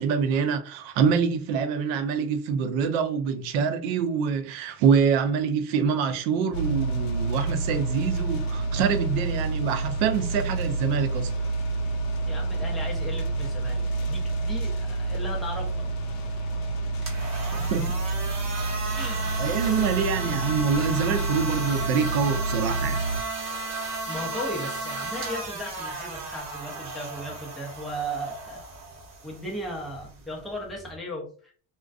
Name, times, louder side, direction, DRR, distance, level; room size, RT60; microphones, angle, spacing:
voice 1, 0.0-11.3 17.5-18.0 19.4-23.0, right 6 dB, 85° right, 0.6 m, -25 dB
sound 1, 6.5-23.2, right 3 dB, 55° left, 0.5 m, -28 dB
voice 2, 12.3-15.9 16.3-16.4 18.9-19.3 24.1-28.7 29.2-31.5, equal, ahead, 0.4 m, -36 dB
sound 2, 16.9-31.0, right 3 dB, 40° right, 0.8 m, -35 dB
2.4 x 2.2 x 2.3 m
cardioid pair, 140°, 43 cm